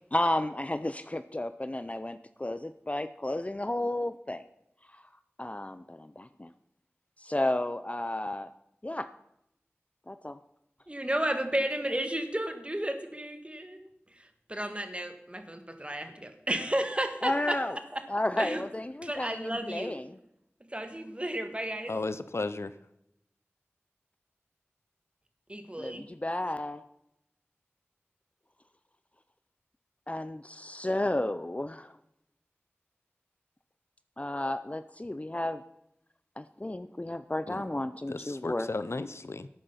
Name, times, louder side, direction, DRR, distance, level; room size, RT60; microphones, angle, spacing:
voice 1, 0.1-4.4 4.9-5.0 5.4-6.5 7.2-8.5 8.8-9.1 10.1-10.4 17.2-17.8 18.1-20.2 25.8-26.8 30.1-32.0 34.2-35.6 36.4-38.7, left 1 dB, 30° left, 12 dB, 0.5 m, -32 dB
voice 2, 10.9-13.8 14.5-17.6 17.9-18.0 18.4-18.6 19.0-20.0 20.6-22.0 25.5-26.0, right 1 dB, 25° right, 8 dB, 1.6 m, -33 dB
voice 3, 21.9-22.8 37.5-37.6 38.1-39.5, left 3 dB, 75° left, 13 dB, 0.6 m, -34 dB
12.0 x 8.7 x 5.7 m, 0.81 s
wide cardioid pair, 45°, 5 cm